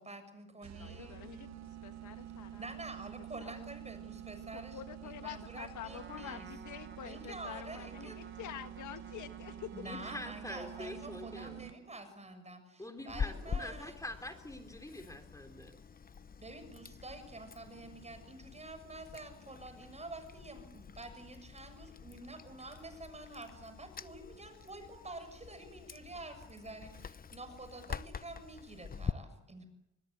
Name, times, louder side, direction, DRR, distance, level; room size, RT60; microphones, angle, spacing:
voice 1, 0.0-1.2 2.6-6.5 7.0-8.2 9.7-14.0 16.4-29.7, right 2 dB, 20° right, 9 dB, 6.7 m, -48 dB
sound 1, 0.6-12.0, right 11 dB, 65° right, 0.8 m, -48 dB
voice 2, 0.8-2.7 3.4-3.7 4.5-9.7, left 11 dB, 75° left, 9 dB, 1.5 m, -47 dB
Trumpet, 5.9-12.0, right 6 dB, 40° right, 2.1 m, -56 dB
voice 3, 9.8-11.6 12.8-15.8, left 1 dB, 10° left, 6 dB, 3.7 m, -45 dB
Chewing mastication, 13.1-29.1, left 6 dB, 30° left, 0.8 m, -45 dB
25.5 x 21.0 x 8.0 m, 0.90 s
cardioid pair, 90°, 30 cm